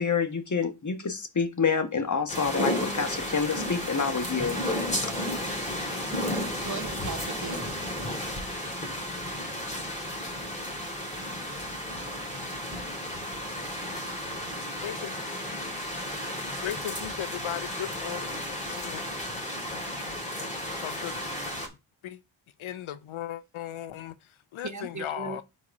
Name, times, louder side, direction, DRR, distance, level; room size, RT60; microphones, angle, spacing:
voice 1, 0.0-4.6 5.0-5.1, left 5 dB, 35° left, 1.3 m, -28 dB
sound 1, 2.3-21.7, left 1 dB, 15° left, 2.2 m, -33 dB
voice 2, 6.6-7.7 24.6-25.4, right 4 dB, 35° right, 0.8 m, -37 dB
voice 3, 14.8-15.2 16.6-19.0 19.7-20.5 20.8-21.1 22.0-22.2 22.6-25.4, left 11 dB, 75° left, 0.6 m, -37 dB
4.8 x 4.2 x 5.3 m
cardioid pair, 45°, 49 cm